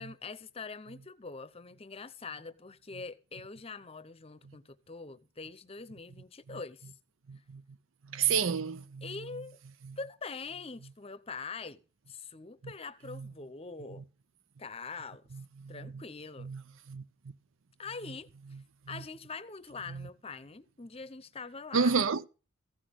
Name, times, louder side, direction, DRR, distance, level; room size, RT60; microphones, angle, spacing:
voice 1, 0.0-6.9 9.0-9.6 10.0-11.8 12.1-14.0 14.6-15.2 15.7-16.5 17.8-18.3 18.9-21.9, left 4 dB, 30° left, 0.8 m, -43 dB
voice 2, 7.3-7.6 8.0-9.1 9.8-10.0 13.1-13.3 15.3-16.0 16.4-16.6 16.9-17.0 18.9-19.0 19.9-20.1 21.7-22.2, right 5 dB, 75° right, 0.6 m, -31 dB
15.0 x 6.1 x 7.8 m
head